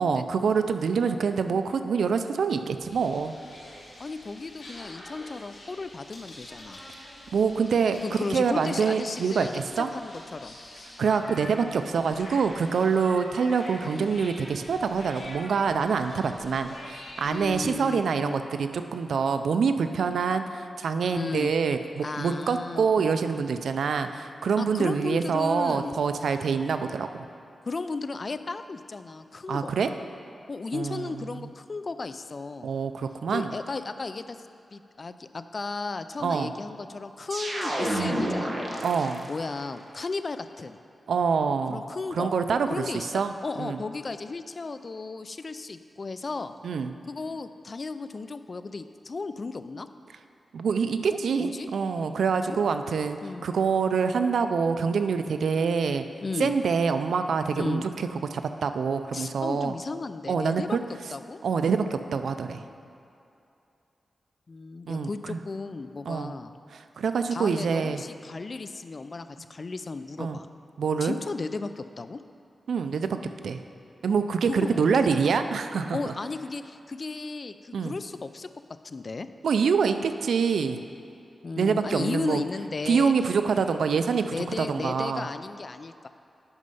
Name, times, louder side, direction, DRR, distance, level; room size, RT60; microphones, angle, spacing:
voice 1, 0.0-3.3 7.3-8.0 8.3-9.9 11.0-27.2 29.5-29.9 30.7-31.5 32.6-33.5 36.2-36.5 38.8-39.3 41.1-41.8 42.1-43.3 43.6-43.8 46.6-46.9 50.5-56.1 56.4-59.7 60.3-60.8 61.4-62.6 64.9-65.4 66.1-66.3 66.7-68.0 70.2-70.4 70.8-71.2 72.7-73.1 73.4-73.6 74.0-76.0 77.7-77.9 79.4-80.8 81.6-82.4 82.9-85.2, right 5 dB, 85° right, 8 dB, 0.4 m, -26 dB
sound 1, 2.8-17.7, left 1 dB, 85° left, 2.3 m, -46 dB
voice 2, 4.0-6.8 8.0-10.6 13.8-14.1 17.2-18.5 21.1-21.5 22.0-23.2 24.6-26.0 27.7-29.7 30.5-32.7 33.3-34.4 34.7-40.8 41.7-42.3 42.7-46.5 47.1-49.9 51.1-51.7 52.3-52.6 53.2-53.5 56.2-56.5 57.6-57.8 59.1-60.8 61.1-61.4 64.5-66.6 67.3-70.5 71.0-72.2 74.5-74.8 75.9-78.5 78.8-79.3 81.4-83.1 84.1-86.1, left 3 dB, 45° left, 11 dB, 0.3 m, -35 dB
sound 2, 37.3-39.5, right 1 dB, 45° right, 1.3 m, -30 dB
9.7 x 5.3 x 5.4 m, 2.6 s
wide cardioid pair, 90°, 0 cm